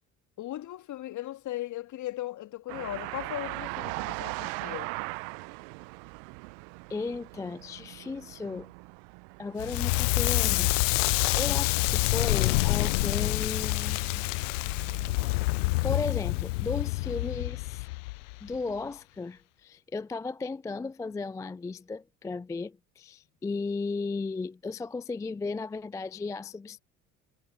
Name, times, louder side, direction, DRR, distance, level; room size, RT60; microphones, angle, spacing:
voice 1, 0.4-4.9 11.5-11.7, left 14 dB, 45° left, 1.9 m, -38 dB
sound 1, 2.7-15.4, right 40 dB or more, 55° right, 0.8 m, -41 dB
voice 2, 6.9-8.7 9.4-10.9 11.3-14.3 15.8-17.9 18.4-26.8, left 3 dB, 10° left, 0.4 m, -35 dB
Crackle, 9.6-18.6, left 24 dB, 60° left, 0.5 m, -27 dB
figure-of-eight pair, 60°, 42 cm